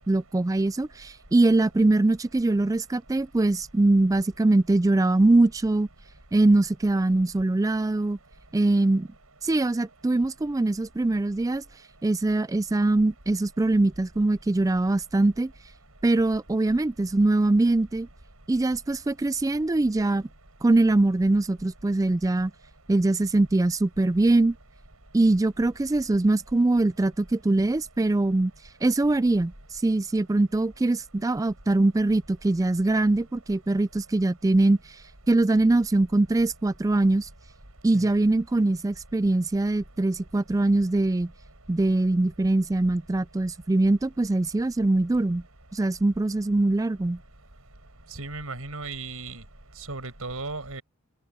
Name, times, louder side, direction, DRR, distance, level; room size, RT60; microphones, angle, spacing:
voice 1, 0.1-5.9 6.3-8.2 8.5-9.1 9.4-11.6 12.0-15.5 16.0-18.1 18.5-20.3 20.6-22.5 22.9-24.6 25.1-28.5 28.8-29.5 29.8-34.8 35.3-37.3 37.8-41.3 41.7-45.4 45.7-47.2, right 2 dB, 15° right, 0.3 m, -22 dB
voice 2, 48.1-49.4 49.8-50.8, right 3 dB, 85° right, 5.5 m, -36 dB
open air
head